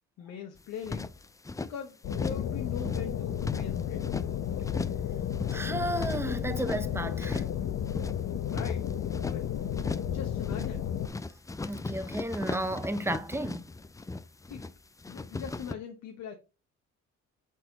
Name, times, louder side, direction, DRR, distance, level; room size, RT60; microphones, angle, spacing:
voice 1, 0.2-1.3 1.6-4.3 8.4-8.8 9.2-9.5 10.1-10.9 14.5-14.6 15.1-16.4, left 8 dB, 85° left, 1.0 m, -41 dB
sound 1, 0.6-1.7 2.1-2.5 2.7-4.3 4.6-5.0 5.3-6.8 7.2-7.6 7.8-9.4 9.7-10.2 10.4-10.8 11.0-14.7 15.0-15.7, left 3 dB, 10° left, 0.3 m, -37 dB
sound 2, 2.0-11.1, left 9 dB, 60° left, 0.8 m, -32 dB
voice 2, 5.5-7.4 11.6-13.7, right 1 dB, 10° right, 0.7 m, -33 dB
6.4 x 4.2 x 4.0 m
cardioid pair, 90°, 30 cm